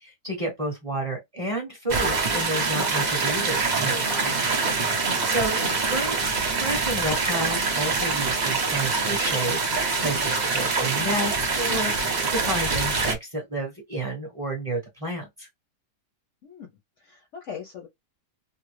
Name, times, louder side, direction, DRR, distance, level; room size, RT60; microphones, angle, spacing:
voice 1, 0.0-4.4 5.2-9.6 10.0-15.5, right 1 dB, 25° right, 0.9 m, -31 dB
sound 1, 1.9-13.1, right 4 dB, 60° right, 0.4 m, -25 dB
voice 2, 5.1-5.9 16.4-17.9, left 7 dB, 60° left, 0.8 m, -41 dB
3.3 x 2.0 x 3.2 m
omnidirectional pair, 1.8 m